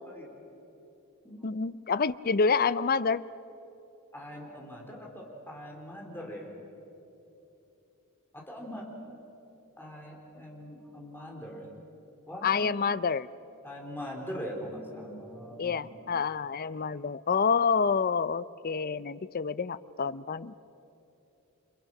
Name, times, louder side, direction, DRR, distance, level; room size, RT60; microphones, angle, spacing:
voice 1, 0.1-0.4 1.2-1.5 4.1-6.5 8.3-8.9 9.8-11.7 12.3-12.7 13.6-16.1, equal, 10° left, -1 dB, 3.9 m, -42 dB
voice 2, 1.4-3.2 12.4-13.3 15.6-20.5, left 5 dB, 40° left, 16 dB, 0.5 m, -28 dB
29.5 x 26.0 x 6.0 m, 2.9 s
head